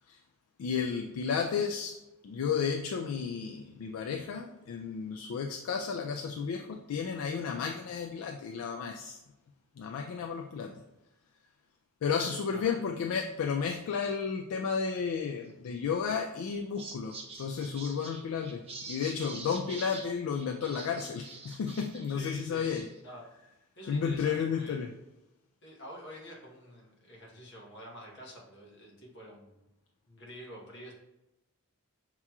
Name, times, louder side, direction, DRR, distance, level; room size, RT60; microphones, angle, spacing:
voice 1, 0.6-2.0 2.2-9.2 9.8-10.8 12.0-22.9 23.9-24.9, left 6 dB, 70° left, 4 dB, 0.3 m, -33 dB
voice 2, 12.5-12.9 22.1-22.7 23.0-23.2 23.8-24.8 25.6-29.7 30.1-30.9, equal, 55° left, -3 dB, 1.1 m, -48 dB
sound 1, 15.9-16.2 16.5-22.1 22.4-23.0, right 3 dB, 30° right, 0.5 m, -46 dB
5.8 x 2.9 x 2.3 m, 0.94 s
head